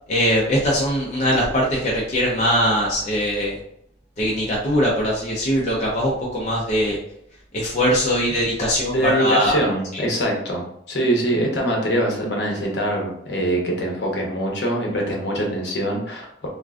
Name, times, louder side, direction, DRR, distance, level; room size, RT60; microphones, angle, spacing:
voice 1, 0.1-3.6 4.2-7.0 7.5-9.6 9.9-10.0, equal, 40° left, -4 dB, 0.5 m, -21 dB
voice 2, 8.6-16.5, right 1 dB, 65° left, -1 dB, 0.8 m, -23 dB
3.6 x 2.4 x 2.3 m, 0.73 s
head